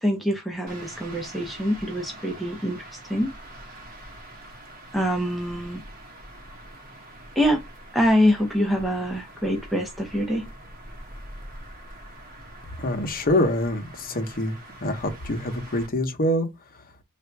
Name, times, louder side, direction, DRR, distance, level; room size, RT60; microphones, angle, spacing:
voice 1, 0.0-3.3 4.9-5.8 7.4-7.6 7.9-10.5, equal, ahead, 0.6 m, -24 dB
sound 1, 0.7-15.9, right 1 dB, 40° right, 1.4 m, -44 dB
voice 2, 12.8-16.5, left 1 dB, 40° left, 0.9 m, -25 dB
3.5 x 2.5 x 4.5 m
head